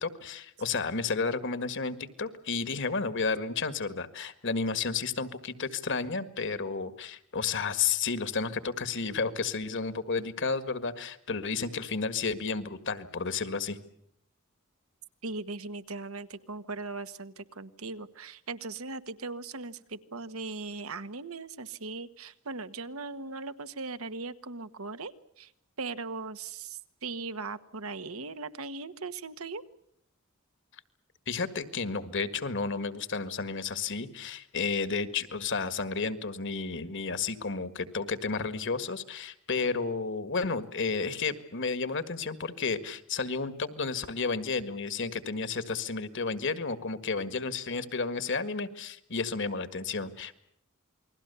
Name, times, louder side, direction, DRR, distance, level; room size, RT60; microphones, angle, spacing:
voice 1, 0.0-13.8 31.3-50.4, left 4 dB, 60° left, 12 dB, 1.8 m, -32 dB
voice 2, 15.2-25.5 25.8-29.6, right 3 dB, 80° right, 11 dB, 1.4 m, -39 dB
29.0 x 21.5 x 7.0 m, 0.72 s
head